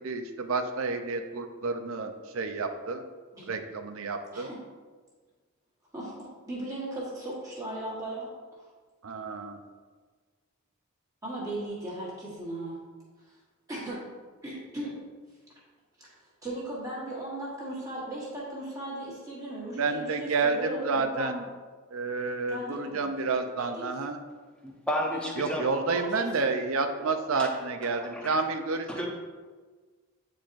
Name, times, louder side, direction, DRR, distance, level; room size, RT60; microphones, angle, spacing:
voice 1, 0.0-3.0 3.5-4.5 9.0-9.6 19.7-21.4 21.9-24.2 25.4-29.1, right 4 dB, 75° right, 7 dB, 0.6 m, -30 dB
voice 2, 5.9-8.3 11.2-12.8 13.2-13.3 13.7-14.0 14.4-15.0 16.0-16.1 16.4-21.3 22.5-23.1 23.6-23.9 25.2-25.3 25.9-26.2, right 1 dB, 15° right, -7 dB, 1.4 m, -37 dB
voice 3, 24.6-25.6 27.4-27.5 27.8-28.4 28.9-29.1, equal, 5° left, -1 dB, 0.7 m, -33 dB
8.5 x 4.4 x 2.6 m, 1.4 s
head